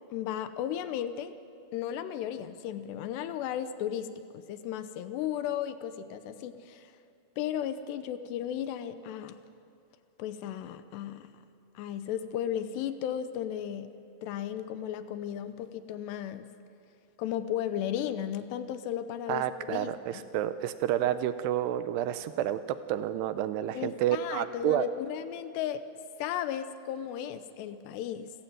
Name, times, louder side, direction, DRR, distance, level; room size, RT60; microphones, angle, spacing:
voice 1, 0.1-1.3 1.7-6.9 7.4-9.4 10.2-11.3 11.8-13.9 14.2-16.5 17.2-20.3 23.8-25.8 26.2-28.3, left 10 dB, 80° left, 11 dB, 2.8 m, -35 dB
voice 2, 19.3-22.6 22.9-24.9, right 12 dB, 80° right, 12 dB, 2.6 m, -29 dB
28.5 x 14.5 x 9.2 m, 2.5 s
omnidirectional pair, 5.1 m